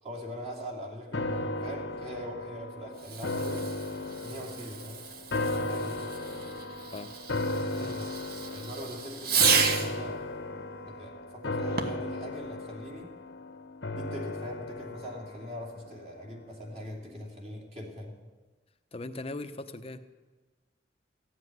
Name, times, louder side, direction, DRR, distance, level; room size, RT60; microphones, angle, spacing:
voice 1, 0.0-3.7 4.2-5.1 5.4-6.0 7.5-8.1 8.5-10.2 10.9-13.1 13.9-18.2, equal, 35° right, 0 dB, 2.9 m, -42 dB
sound 1, 1.1-16.4 16.8-16.9, left 2 dB, 85° left, 1.2 m, -35 dB
Fireworks, 2.9-10.0 11.7-12.2, right 6 dB, 60° right, 1.1 m, -32 dB
voice 2, 18.9-20.0, left 2 dB, 35° left, 9 dB, 0.8 m, -39 dB
15.0 x 8.0 x 9.5 m, 1.3 s
head